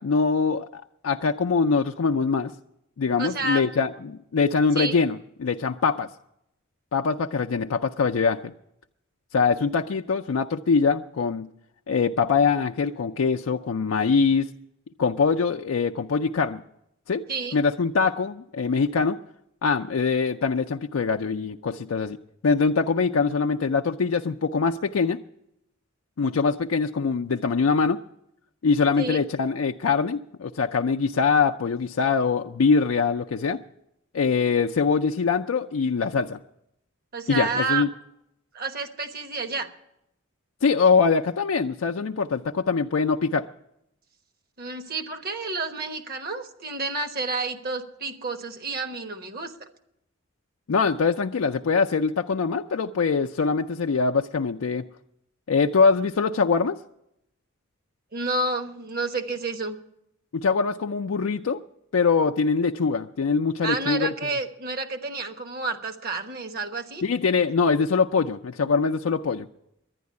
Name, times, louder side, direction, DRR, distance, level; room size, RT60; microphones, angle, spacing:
voice 1, 0.0-2.5 3.0-6.1 6.9-8.5 9.3-11.5 11.9-14.5 15.0-16.6 17.1-17.2 17.5-19.2 19.6-22.2 22.4-25.2 26.2-28.0 28.6-33.6 34.1-36.4 37.3-37.9 40.6-43.5 50.7-54.8 55.5-56.8 60.3-61.6 61.9-64.1 67.0-69.5, left 5 dB, 75° left, 5 dB, 0.4 m, -23 dB
voice 2, 3.2-3.6 4.8-5.0 17.3-17.6 29.0-29.2 37.1-37.8 38.5-39.7 44.6-49.7 58.1-59.8 63.6-67.0, right 3 dB, 45° right, 7 dB, 1.1 m, -30 dB
11.0 x 10.5 x 9.5 m, 0.83 s
head